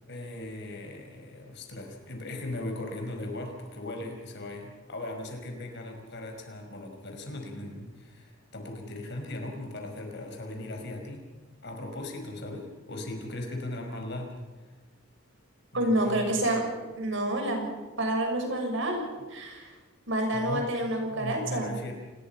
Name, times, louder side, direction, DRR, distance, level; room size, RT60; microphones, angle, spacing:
voice 1, 0.1-11.3 11.6-14.3 14.6-14.7 15.7-16.3 20.3-20.7 21.1-21.9, left 1 dB, 55° left, 3 dB, 5.3 m, -38 dB
voice 2, 15.7-16.6 16.9-17.7 18.0-19.0 19.3-19.7 20.1-21.7, right 1 dB, 60° right, 3 dB, 6.5 m, -28 dB
28.5 x 21.0 x 5.9 m, 1.3 s
head